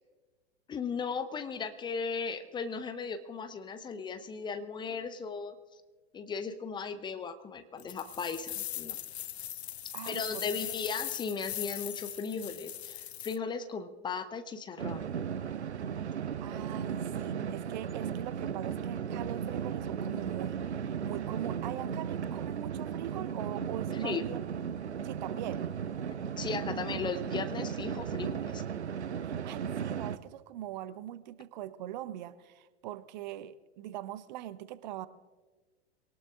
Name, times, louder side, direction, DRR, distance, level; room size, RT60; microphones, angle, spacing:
voice 1, 0.7-5.6 6.1-9.0 10.1-15.1 23.9-24.3 26.4-28.6, left 5 dB, 15° left, 10 dB, 0.7 m, -37 dB
sound 1, 7.8-13.4, left 11 dB, 70° left, 0.5 m, -40 dB
voice 2, 9.9-10.4 16.0-24.4 25.0-25.7 29.2-35.1, right 13 dB, 40° right, 16 dB, 0.6 m, -42 dB
sound 2, 14.8-30.2, right 7 dB, 75° right, 0.6 m, -36 dB
23.0 x 18.5 x 2.5 m, 1.3 s
figure-of-eight pair, 95°, 34 cm